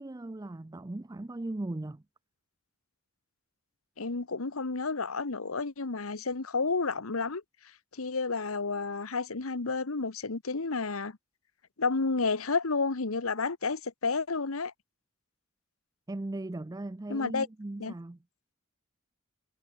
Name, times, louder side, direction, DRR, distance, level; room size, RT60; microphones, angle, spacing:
voice 1, 0.0-2.0 16.1-18.2, right 2 dB, 15° right, 0.4 m, -38 dB
voice 2, 4.0-7.4 8.0-11.1 11.8-14.7 17.1-17.5 17.8-17.9, left 4 dB, 90° left, 1.2 m, -31 dB
head